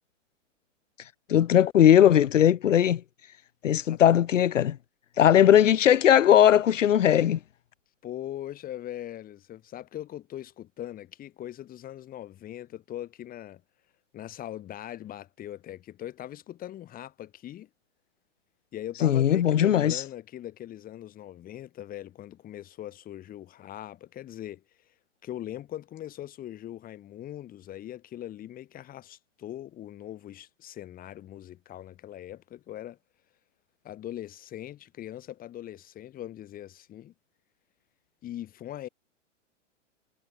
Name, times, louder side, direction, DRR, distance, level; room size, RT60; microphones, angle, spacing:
voice 1, 1.3-3.0 3.6-4.8 5.2-7.4 19.0-20.0, left 10 dB, 80° left, 1.3 m, -19 dB
voice 2, 5.3-5.8 8.0-13.6 14.1-17.7 18.7-24.6 25.2-33.0 33.8-37.1 38.2-38.9, left 12 dB, 20° left, 4.3 m, -41 dB
hypercardioid pair, 140°, 38 cm